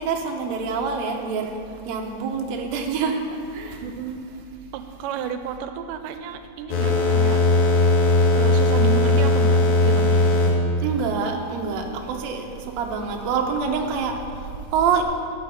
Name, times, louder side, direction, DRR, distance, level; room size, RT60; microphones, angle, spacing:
voice 1, 0.0-1.6 1.9-3.8 10.8-15.0, right 5 dB, 70° right, 2 dB, 2.0 m, -26 dB
voice 2, 3.8-4.3 4.7-7.4 8.4-10.3, right 8 dB, 90° right, 8 dB, 2.2 m, -32 dB
Energy Sword, 6.7-10.5, left 2 dB, 70° left, 2.8 m, -18 dB
13.0 x 8.8 x 4.2 m, 2.5 s
omnidirectional pair, 3.8 m